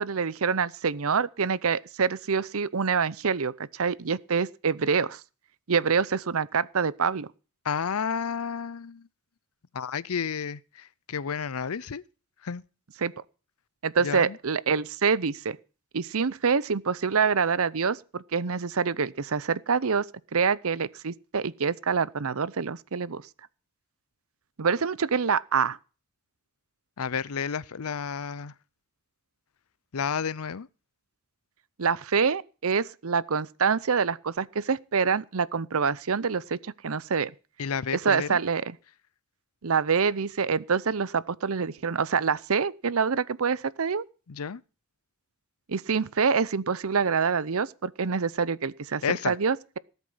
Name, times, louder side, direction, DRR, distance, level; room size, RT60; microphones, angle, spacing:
voice 1, 0.0-5.2 5.7-7.3 13.0-13.1 13.8-15.6 15.9-20.0 20.3-23.2 24.6-25.8 31.8-37.3 37.9-38.6 39.6-44.0 45.7-49.8, right 5 dB, 70° right, 0.7 m, -26 dB
voice 2, 7.6-9.1 9.7-12.0 12.4-12.6 14.0-14.4 27.0-28.5 29.9-30.7 37.6-38.4 44.3-44.6 49.0-49.4, left 6 dB, 75° left, 0.6 m, -31 dB
19.0 x 8.2 x 5.6 m
head